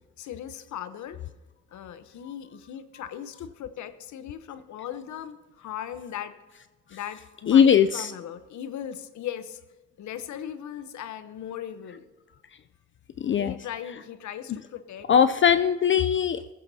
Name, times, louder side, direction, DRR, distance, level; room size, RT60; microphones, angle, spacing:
voice 1, 0.2-1.2 1.7-6.3 6.9-9.6 10.0-12.0 13.3-15.1 15.5-15.6, left 10 dB, 70° left, 12 dB, 0.9 m, -38 dB
voice 2, 7.5-8.1 13.2-13.5 15.1-16.5, left 8 dB, 40° left, 11 dB, 0.5 m, -20 dB
15.0 x 14.5 x 2.8 m, 1.3 s
cardioid pair, 90°, 30 cm